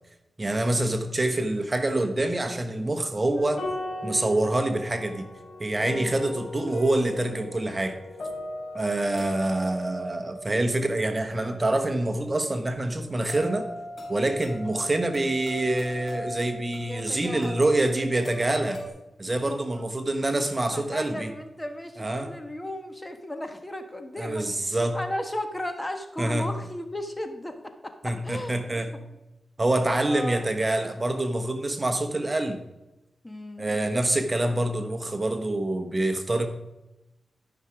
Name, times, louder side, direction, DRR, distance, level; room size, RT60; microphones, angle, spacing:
voice 1, 0.4-3.6 4.0-5.3 5.6-7.9 8.7-13.7 14.1-18.8 19.2-21.3 22.0-22.3 24.2-25.0 26.2-26.5 28.0-28.9 29.6-32.6 33.6-36.5, right 2 dB, 30° right, 6 dB, 1.2 m, -26 dB
sound 1, 3.4-18.9, left 1 dB, 50° left, 3.7 m, -39 dB
voice 2, 16.8-17.8 19.5-19.8 20.7-28.6 30.0-30.5 33.2-33.8, left 1 dB, 20° left, 7 dB, 1.4 m, -35 dB
13.5 x 5.9 x 5.0 m, 0.96 s
cardioid pair, 55°, 0 cm